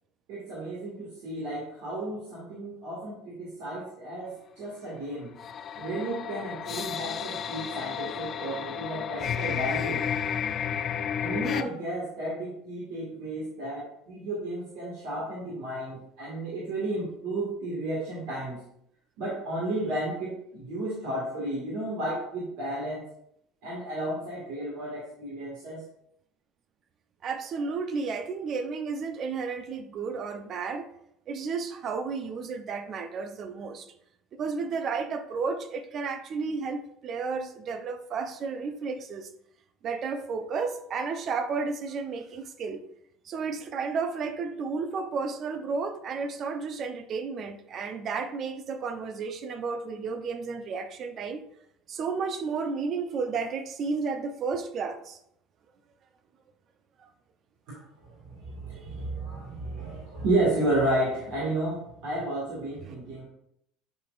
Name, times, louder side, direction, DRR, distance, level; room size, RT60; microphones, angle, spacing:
voice 1, 0.3-5.3 5.8-10.0 11.2-18.6 19.2-23.0 23.6-25.8 58.0-63.2, right 1 dB, 65° right, 2.1 m, -32 dB
sound 1, 5.4-11.6, left 8 dB, 45° left, 0.4 m, -32 dB
voice 2, 27.2-30.9 31.3-33.9 34.3-39.3 39.8-42.8 43.2-51.4 51.9-55.2 57.0-57.1 62.8-63.0, right 5 dB, 45° right, 0.8 m, -32 dB
10.0 x 4.3 x 2.6 m
hypercardioid pair, 80°, 0 cm